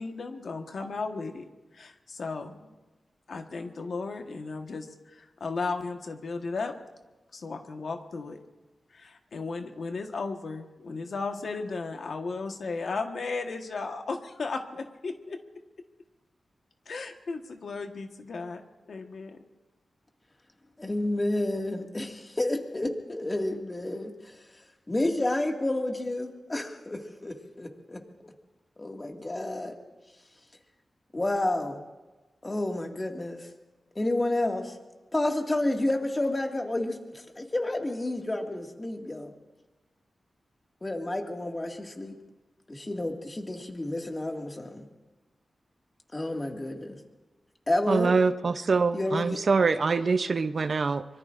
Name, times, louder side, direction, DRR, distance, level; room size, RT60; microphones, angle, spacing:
voice 1, 0.0-1.4 1.7-2.7 3.3-6.7 7.3-8.4 8.9-15.4 16.9-18.6 18.9-19.4, left 4 dB, 70° left, 5 dB, 1.3 m, -35 dB
voice 2, 20.8-24.4 24.9-28.3 28.8-29.7 31.1-31.8 32.4-33.5 34.0-34.8 35.1-39.3 40.8-42.2 42.7-44.9 46.1-47.0 47.7-48.2 48.9-49.4, left 1 dB, 25° left, 2 dB, 2.0 m, -30 dB
voice 3, 47.9-51.1, right 4 dB, 60° right, 11 dB, 0.6 m, -24 dB
24.5 x 23.0 x 2.6 m, 1.1 s
wide cardioid pair, 80°, 0 cm